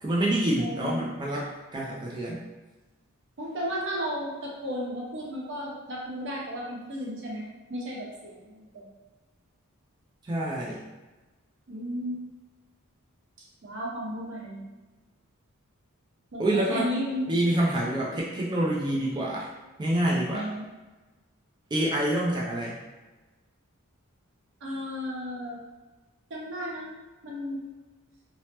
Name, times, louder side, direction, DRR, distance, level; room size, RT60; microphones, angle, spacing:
voice 1, 0.0-2.4 10.2-10.8 16.4-16.9 17.3-19.5 19.8-20.5 21.7-22.8, right 1 dB, 20° right, -5 dB, 0.3 m, -27 dB
voice 2, 0.6-1.0 3.4-8.9 11.7-12.2 13.6-14.7 16.3-17.5 17.9-18.0 20.3-20.6 24.6-25.6 26.3-27.6, equal, 60° right, -4 dB, 0.8 m, -34 dB
3.1 x 2.0 x 2.8 m, 1.2 s
head